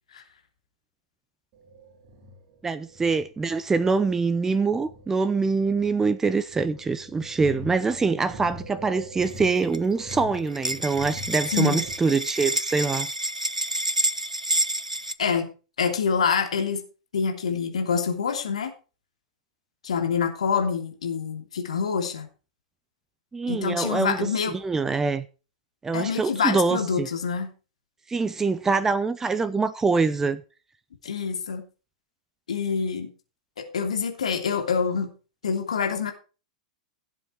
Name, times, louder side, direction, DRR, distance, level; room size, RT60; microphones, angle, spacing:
sound 1, 1.5-11.9, equal, 40° right, 3.8 m, -43 dB
voice 1, 2.6-13.1 23.3-24.2 24.5-25.2 25.8-27.1 28.1-30.4, right 4 dB, 10° right, 0.6 m, -24 dB
sound 2, 9.2-9.8 10.1-10.2 10.4-15.1, right 1 dB, 85° right, 0.7 m, -28 dB
voice 2, 11.5-11.8 15.2-15.5 15.8-16.8 17.1-18.7 19.8-22.3 23.5-24.6 25.9-27.5 31.0-31.6 32.5-33.1 33.6-35.1 35.4-36.1, left 6 dB, 65° left, 3.0 m, -26 dB
17.0 x 7.6 x 4.5 m
figure-of-eight pair, 95°, 4 cm